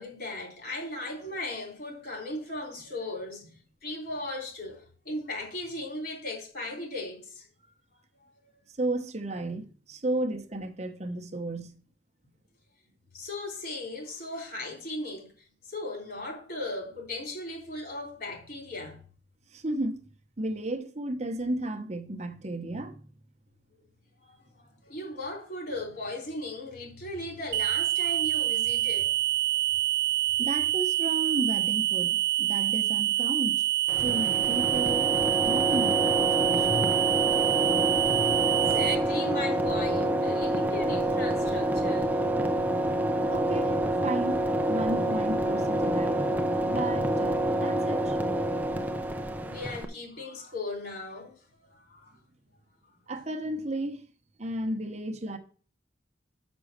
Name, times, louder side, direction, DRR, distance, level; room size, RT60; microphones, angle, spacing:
voice 1, 0.0-7.5 8.2-8.3 13.1-15.3 15.6-19.0 24.2-29.1 29.5-29.6 36.6-42.1 49.4-52.2, left 2 dB, 50° left, 3.4 m, -37 dB
voice 2, 8.7-11.8 19.5-20.0 20.4-23.1 30.4-33.7 34.0-35.1 35.4-36.8 43.3-44.4 44.7-48.3 53.1-54.0 54.4-55.4, right 1 dB, 35° right, 1.0 m, -33 dB
sound 1, 27.5-39.0, right 14 dB, 55° right, 0.5 m, -26 dB
sound 2, 33.9-49.8, right 1 dB, 10° right, 0.6 m, -27 dB
6.5 x 6.1 x 6.6 m
head